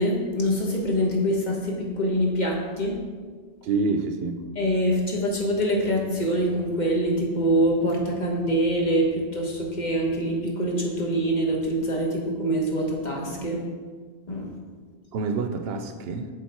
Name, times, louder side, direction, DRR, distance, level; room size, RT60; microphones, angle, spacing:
voice 1, 0.0-3.0 4.5-13.6 14.3-14.5, equal, 45° left, 1.2 m, -24 dB
voice 2, 3.6-4.5 15.1-16.3, right 4 dB, 75° right, 0.8 m, -27 dB
7.5 x 3.8 x 4.3 m
omnidirectional pair, 1.0 m